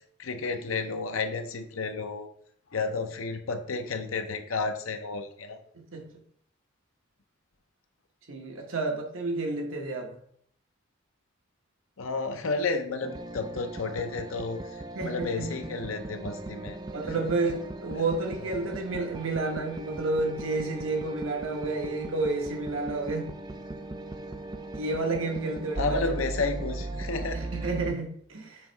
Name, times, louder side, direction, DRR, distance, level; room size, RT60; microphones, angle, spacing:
voice 1, 0.2-2.3 2.7-5.6 12.0-16.8 17.2-17.3 18.4-18.7 25.7-27.5, left 3 dB, 80° left, 7 dB, 0.7 m, -32 dB
voice 2, 8.3-10.2 14.9-15.5 16.9-23.3 24.7-26.1 27.3-28.7, right 3 dB, 75° right, 2 dB, 1.2 m, -30 dB
sound 1, 13.0-27.9, right 2 dB, 20° right, 0.4 m, -38 dB
7.5 x 3.0 x 4.5 m, 0.64 s
head